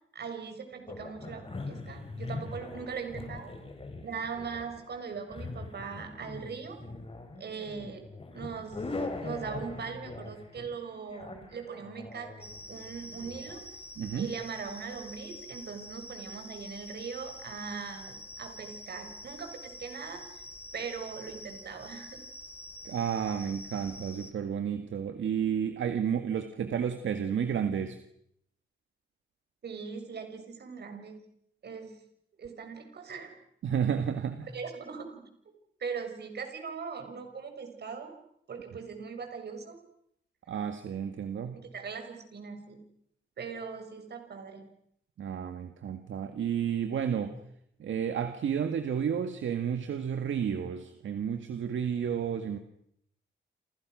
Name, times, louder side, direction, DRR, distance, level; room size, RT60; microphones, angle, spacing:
voice 1, 0.1-3.6 4.0-6.8 7.4-8.0 8.3-8.9 9.2-13.6 14.1-20.2 20.7-22.2 29.6-31.2 31.6-32.0 32.4-33.3 34.5-35.2 35.8-38.1 38.5-39.8 41.5-42.8 43.4-44.7, right 5 dB, 55° right, 5 dB, 6.2 m, -40 dB
sound 1, 0.9-13.5, left 3 dB, 30° left, 4.4 m, -42 dB
sound 2, 12.4-24.3, left 1 dB, 10° left, 3.0 m, -46 dB
voice 2, 14.0-14.3 22.8-28.0 33.6-34.5 40.5-41.6 45.2-47.3 47.8-52.6, right 8 dB, 75° right, 8 dB, 2.0 m, -31 dB
29.0 x 28.0 x 6.4 m, 0.72 s
wide cardioid pair, 155°, 20 cm